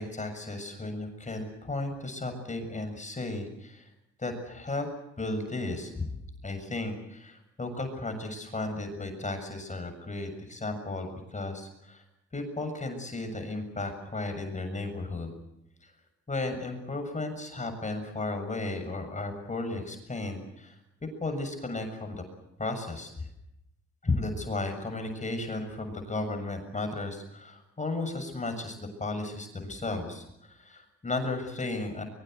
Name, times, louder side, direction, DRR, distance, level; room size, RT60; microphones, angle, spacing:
voice 1, 0.0-3.9 4.2-4.9 5.2-6.1 6.4-12.0 12.3-15.3 15.8-15.9 16.3-20.8 21.2-22.2 22.6-23.3 24.0-32.0, left 2 dB, 25° left, 6 dB, 7.0 m, -34 dB
23.5 x 23.5 x 8.0 m, 0.83 s
cardioid pair, 90°, 30 cm